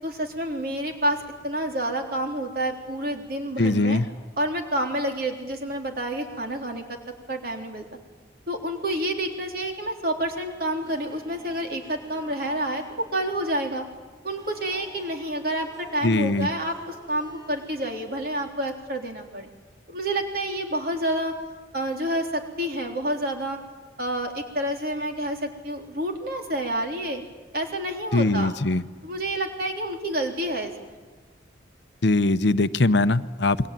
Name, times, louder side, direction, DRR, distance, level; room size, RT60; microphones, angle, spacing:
voice 1, 0.0-4.0 4.4-7.0 7.3-7.9 8.5-13.8 14.2-19.5 19.9-21.3 21.7-23.6 24.0-27.2 27.5-28.5 29.0-30.9, right 1 dB, 50° right, 3 dB, 3.8 m, -29 dB
voice 2, 3.6-4.1 16.0-16.5 28.1-28.8 32.0-33.7, left 2 dB, 70° left, 13 dB, 0.8 m, -21 dB
Harp, 10.6-18.5, right 1 dB, 20° right, 4.8 m, -50 dB
28.5 x 23.0 x 9.1 m, 1.2 s
head